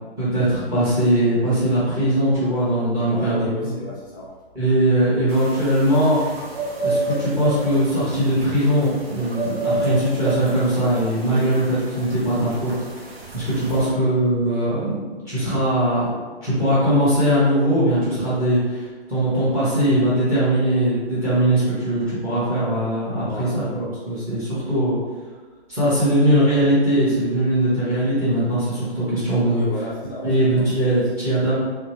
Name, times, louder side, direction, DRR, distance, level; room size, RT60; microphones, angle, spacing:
voice 1, 0.2-3.7 4.5-6.2 6.8-13.0 13.3-15.0 15.3-16.1 16.4-18.8 19.1-25.0 25.7-29.7 30.2-31.5, right 1 dB, 10° right, -10 dB, 0.9 m, -20 dB
voice 2, 3.0-4.3 9.6-9.9 13.7-13.9 19.8-20.1 23.2-23.6 29.5-31.0, left 2 dB, 20° left, -5 dB, 0.5 m, -34 dB
sound 1, 5.3-13.9, right 2 dB, 65° right, 0.6 m, -30 dB
2.9 x 2.1 x 2.9 m, 1.3 s
figure-of-eight pair, 135°, 32 cm